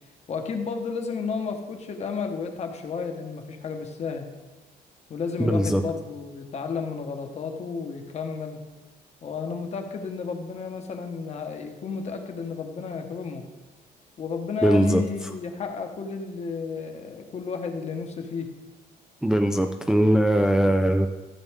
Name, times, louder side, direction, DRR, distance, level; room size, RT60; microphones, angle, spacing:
voice 1, 0.3-4.2 5.1-8.6 9.2-13.4 14.2-18.5, left 5 dB, 40° left, 5 dB, 1.2 m, -32 dB
voice 2, 5.4-5.8 14.6-15.3 19.2-21.1, right 1 dB, 5° right, 4 dB, 0.4 m, -21 dB
14.0 x 7.8 x 3.6 m, 1.1 s
cardioid pair, 160°, 16 cm